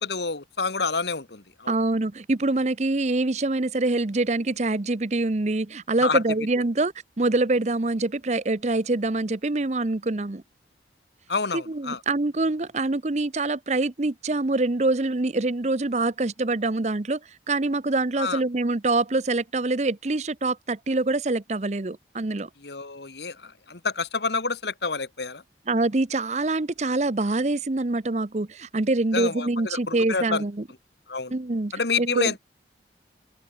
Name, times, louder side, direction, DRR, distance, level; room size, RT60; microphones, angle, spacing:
voice 1, 0.0-1.8 6.0-6.2 11.3-12.0 18.2-18.4 22.6-25.4 29.1-30.4 31.1-31.3 31.7-32.4, left 4 dB, 75° left, 1.9 m, -28 dB
voice 2, 1.7-10.4 11.5-17.2 17.5-22.5 25.7-30.6 31.3-31.7 32.0-32.3, right 2 dB, 40° right, 0.8 m, -25 dB
open air
head